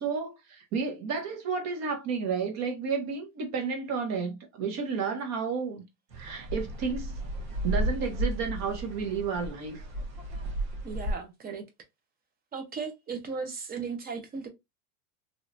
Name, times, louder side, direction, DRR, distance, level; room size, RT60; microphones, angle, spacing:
voice 1, 0.0-5.8 6.2-7.2 7.6-9.8, right 5 dB, 40° right, 1.3 m, -31 dB
sound 1, 6.1-11.1, right 1 dB, 80° right, 1.4 m, -33 dB
voice 2, 10.8-11.6 12.5-14.5, right 5 dB, 20° right, 0.8 m, -36 dB
3.2 x 2.9 x 2.5 m
supercardioid pair, 145°, 41 cm